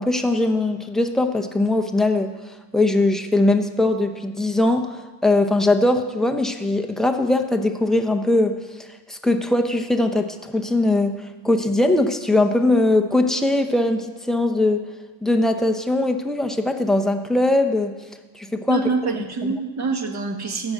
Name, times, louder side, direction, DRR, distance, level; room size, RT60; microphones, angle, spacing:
voice 1, 0.0-2.3 2.7-8.6 9.1-11.2 11.4-14.8 15.2-17.9 18.3-18.8, left 2 dB, ahead, 5 dB, 0.7 m, -20 dB
voice 2, 18.7-20.7, right 4 dB, 35° right, 4 dB, 1.7 m, -25 dB
14.5 x 6.1 x 9.0 m, 1.3 s
cardioid pair, 135°, 49 cm